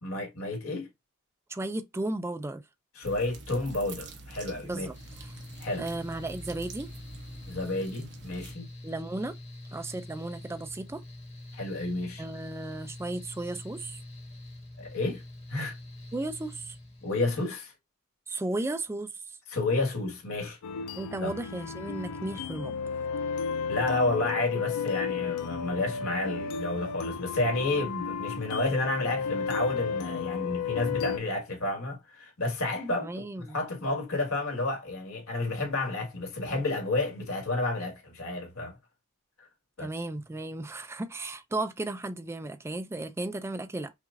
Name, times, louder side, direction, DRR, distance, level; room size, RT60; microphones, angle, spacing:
voice 1, 0.0-0.9 3.0-4.9 5.6-5.9 7.5-8.7 11.5-12.2 14.8-15.2 15.5-15.7 17.0-17.7 19.5-20.6 21.2-21.3 23.7-38.8 39.4-39.5 39.8-39.9, left 2 dB, 65° left, 1.8 m, -31 dB
voice 2, 1.5-2.6 4.6-5.3 5.8-6.9 8.8-9.3 9.7-11.0 12.2-14.0 16.1-16.8 18.3-19.4 20.9-22.8 33.0-33.6 39.8-43.9, right 2 dB, 10° right, 0.3 m, -35 dB
sound 1, 3.0-8.5, right 2 dB, 55° right, 0.9 m, -46 dB
Mechanical fan, 4.9-17.5, left 1 dB, 30° left, 1.3 m, -45 dB
sound 2, 20.6-31.2, left 6 dB, 85° left, 0.4 m, -33 dB
5.8 x 2.4 x 2.5 m
head